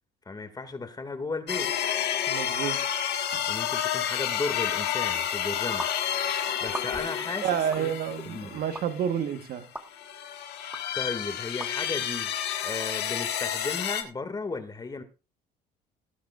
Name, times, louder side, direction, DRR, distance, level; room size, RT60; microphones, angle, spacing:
voice 1, 0.3-1.7 3.5-5.9 6.6-8.6 10.9-12.3 12.6-15.0, left 3 dB, 25° left, 2.1 m, -35 dB
sound 1, 1.5-9.4 9.9-14.0, left 9 dB, 75° left, 1.6 m, -30 dB
voice 2, 2.3-2.8 3.3-3.4 7.4-9.7, right 9 dB, 65° right, 1.4 m, -29 dB
sound 2, 5.8-5.9 6.7-7.2 7.7-7.9 8.7-8.9 9.7-9.9 10.7-10.8 11.6-11.7, right 1 dB, 10° right, 1.6 m, -37 dB
18.5 x 11.0 x 2.5 m
cardioid pair, 110°, 17 cm